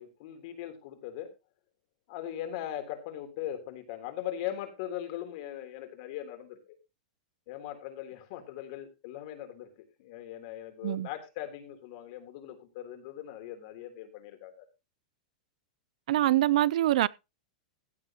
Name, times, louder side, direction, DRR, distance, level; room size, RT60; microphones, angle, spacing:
voice 1, 0.0-1.3 2.1-6.8 7.5-9.7 10.0-14.7, left 11 dB, 50° left, 3.6 m, -40 dB
voice 2, 16.1-17.1, right 14 dB, 65° right, 0.5 m, -24 dB
15.5 x 10.0 x 3.0 m
supercardioid pair, 155°, 4 cm